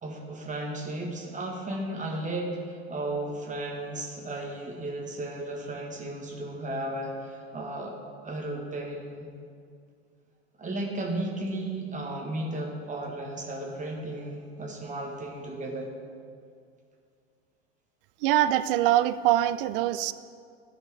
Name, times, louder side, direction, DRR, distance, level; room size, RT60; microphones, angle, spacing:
voice 1, 0.0-7.9 8.2-9.3 10.6-15.9, right 1 dB, 25° right, -1 dB, 1.7 m, -34 dB
voice 2, 18.2-20.1, right 13 dB, 60° right, 14 dB, 0.5 m, -23 dB
14.0 x 4.7 x 3.5 m, 2.3 s
figure-of-eight pair, 80°, 31 cm